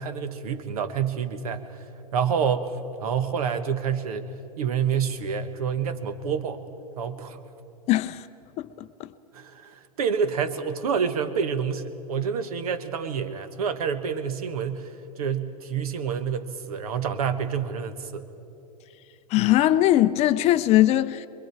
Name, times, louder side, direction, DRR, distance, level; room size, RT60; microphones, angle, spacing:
voice 1, 0.0-1.8 2.1-2.7 3.0-4.2 4.6-6.6 7.0-7.4 9.3-18.2, right 7 dB, 65° right, 1.3 m, -28 dB
voice 2, 7.9-8.2 8.6-9.1 19.3-21.3, left 14 dB, 30° left, 0.5 m, -21 dB
24.5 x 22.5 x 4.7 m
figure-of-eight pair, 100°, 20 cm